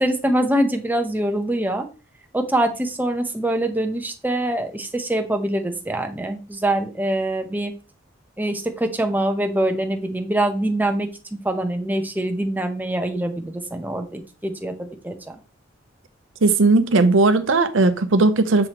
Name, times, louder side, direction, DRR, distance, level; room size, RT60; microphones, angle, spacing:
voice 1, 0.0-1.9 2.3-7.7 8.4-15.4, right 1 dB, 10° right, 0.8 m, -24 dB
voice 2, 16.4-18.7, right 3 dB, 80° right, 0.7 m, -17 dB
7.3 x 4.8 x 3.0 m
head